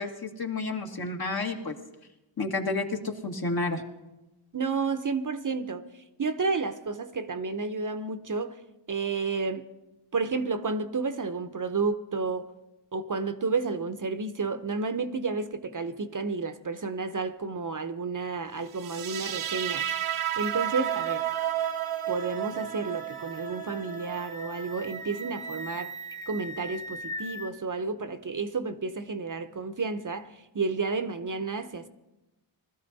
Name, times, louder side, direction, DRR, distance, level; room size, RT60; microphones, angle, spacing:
voice 1, 0.0-1.7 2.4-3.8, left 3 dB, 50° left, 1.8 m, -30 dB
voice 2, 4.5-5.8 6.2-8.6 8.9-9.6 10.1-12.5 12.9-19.9 20.4-21.2 22.1-26.0 26.3-31.9, right 4 dB, 40° right, 0.9 m, -31 dB
sound 1, 18.8-25.8, right 11 dB, 85° right, 0.7 m, -32 dB
sound 2, 20.4-27.5, equal, 10° left, 0.8 m, -42 dB
20.0 x 13.5 x 4.1 m
cardioid pair, 65°, 48 cm